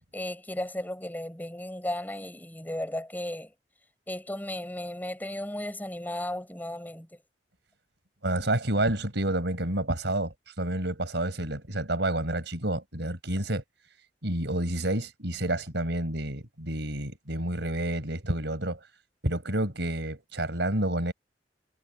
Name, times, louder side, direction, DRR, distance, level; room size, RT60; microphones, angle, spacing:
voice 1, 0.1-3.5 4.1-7.2, left 1 dB, 10° left, 5.3 m, -35 dB
voice 2, 8.2-13.6 14.2-18.8 19.2-21.1, right 1 dB, 70° right, 5.0 m, -29 dB
head